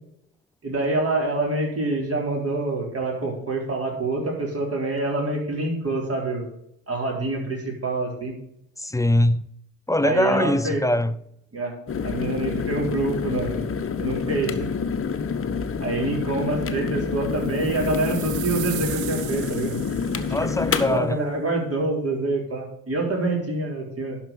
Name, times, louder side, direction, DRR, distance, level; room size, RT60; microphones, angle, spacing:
voice 1, 0.6-6.5 6.9-8.3 10.0-10.8 11.5-11.7 12.0-13.7 14.0-14.7 15.8-19.8 20.4-20.5 20.9-24.2, right 2 dB, 35° right, 3.9 m, -26 dB
voice 2, 8.8-9.4 9.9-11.2 20.3-21.2, left 1 dB, 10° left, 0.4 m, -22 dB
sound 1, 11.9-21.0, left 5 dB, 30° left, 1.1 m, -28 dB
sound 2, 17.4-20.6, right 13 dB, 60° right, 0.8 m, -37 dB
11.5 x 4.9 x 6.8 m
hypercardioid pair, 45°, 41 cm